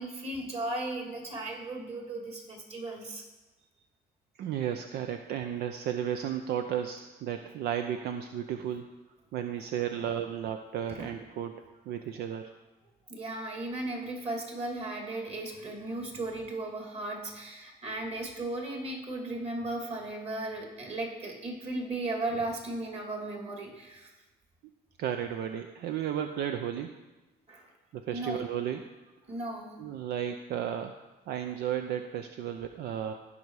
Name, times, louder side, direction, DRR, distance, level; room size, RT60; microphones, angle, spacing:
voice 1, 0.0-3.2 10.9-11.1 13.1-24.1 27.5-27.7 28.1-28.4 29.3-29.7, right 2 dB, 35° right, 1 dB, 2.6 m, -36 dB
voice 2, 4.4-8.9 9.3-12.5 25.0-26.9 27.9-28.9 29.8-33.1, right 9 dB, 75° right, 7 dB, 0.6 m, -34 dB
15.5 x 5.6 x 4.8 m, 1.1 s
cardioid pair, 110°, 17 cm